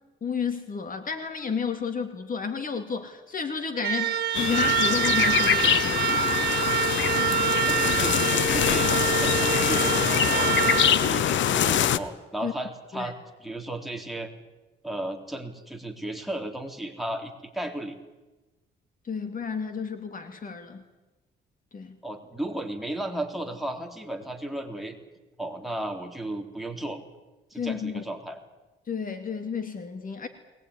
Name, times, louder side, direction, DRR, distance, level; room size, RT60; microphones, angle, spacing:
voice 1, 0.2-6.1 11.6-11.8 12.4-12.5 12.9-13.1 19.0-20.8 21.7-22.0 27.5-28.0 28.9-30.3, left 5 dB, 45° left, 8 dB, 2.4 m, -31 dB
sound 1, 3.7-11.9, right 10 dB, 55° right, 1.8 m, -26 dB
sound 2, 4.3-12.0, left 10 dB, 70° left, 1.0 m, -24 dB
voice 2, 7.7-10.5 10.8-14.3 14.8-18.0 22.0-24.9 25.4-27.0 27.5-28.4, right 1 dB, ahead, 2 dB, 3.7 m, -34 dB
22.0 x 19.5 x 9.8 m, 1.1 s
cardioid pair, 90°, 20 cm